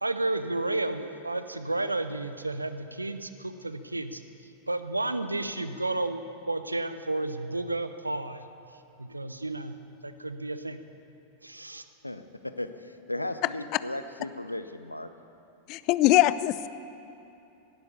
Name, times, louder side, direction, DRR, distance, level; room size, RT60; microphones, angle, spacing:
voice 1, 0.0-4.2 4.7-8.4 9.0-9.7 10.0-10.8 11.4-11.8, right 2 dB, 85° right, 11 dB, 0.8 m, -32 dB
voice 2, 12.0-15.1, left 1 dB, 85° left, 10 dB, 0.7 m, -36 dB
voice 3, 15.7-16.7, left 15 dB, 40° left, 16 dB, 0.5 m, -22 dB
18.5 x 11.5 x 6.9 m, 2.8 s
figure-of-eight pair, 90°, 0 cm